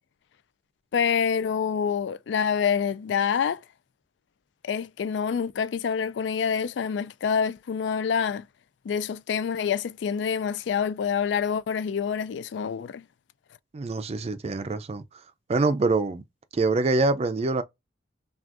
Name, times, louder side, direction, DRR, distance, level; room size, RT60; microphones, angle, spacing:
voice 1, 0.9-3.6 4.6-8.4 8.9-13.0, left 7 dB, 70° left, 0.3 m, -26 dB
voice 2, 13.7-15.0 15.5-16.2 16.5-17.6, right 3 dB, 35° right, 0.4 m, -25 dB
6.0 x 2.4 x 2.5 m
head